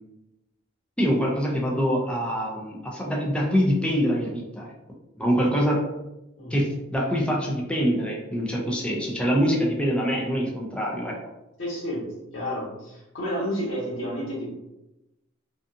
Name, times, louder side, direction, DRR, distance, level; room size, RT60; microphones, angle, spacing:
voice 1, 1.0-4.7 5.2-5.8 6.5-11.2, equal, 5° left, -2 dB, 0.4 m, -24 dB
voice 2, 11.6-12.1 12.3-14.5, equal, 85° left, -6 dB, 1.2 m, -30 dB
2.6 x 2.4 x 2.4 m, 0.95 s
head